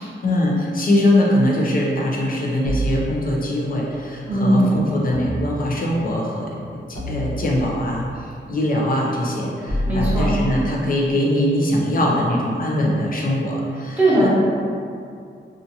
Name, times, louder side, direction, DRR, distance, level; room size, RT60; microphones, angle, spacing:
voice 1, 0.2-14.3, left 1 dB, 45° left, -3 dB, 0.4 m, -22 dB
sound 1, 2.7-3.7 5.1-6.1 6.9-8.0 9.7-11.1, right 1 dB, 90° left, 0.7 m, -28 dB
voice 2, 4.3-4.7 9.9-10.3 14.0-14.3, right 1 dB, 10° right, -11 dB, 0.8 m, -18 dB
2.5 x 2.4 x 2.6 m, 2.4 s
wide cardioid pair, 175°, 20 cm